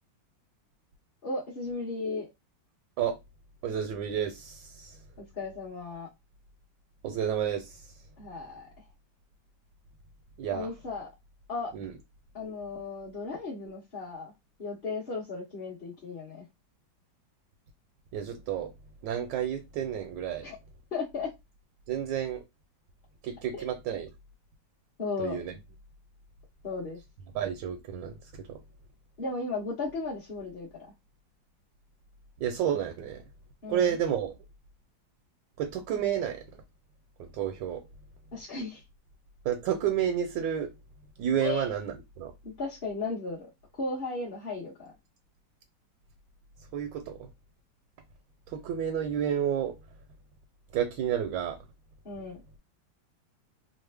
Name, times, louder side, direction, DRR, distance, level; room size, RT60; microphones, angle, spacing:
voice 1, 1.2-2.3 5.2-6.1 8.2-8.7 10.5-11.1 11.5-11.7 12.3-14.3 14.6-16.5 20.4-20.6 20.9-21.3 23.5-23.6 25.0-25.4 26.6-27.0 29.2-30.9 33.6-34.0 38.3-38.8 41.4-41.7 42.4-43.5 43.7-44.9 52.0-52.4, left 3 dB, 35° left, 1.0 m, -35 dB
voice 2, 3.6-5.0 7.0-8.0 10.4-10.7 11.7-11.9 18.1-18.7 19.0-20.5 21.9-22.4 23.2-24.1 25.2-25.6 27.3-28.6 32.4-33.2 33.7-34.4 35.6-36.6 37.2-37.9 39.4-40.7 41.2-42.3 46.7-47.3 48.5-49.8 50.7-51.6, right 9 dB, 75° right, 1.3 m, -31 dB
3.2 x 2.0 x 3.3 m
omnidirectional pair, 2.1 m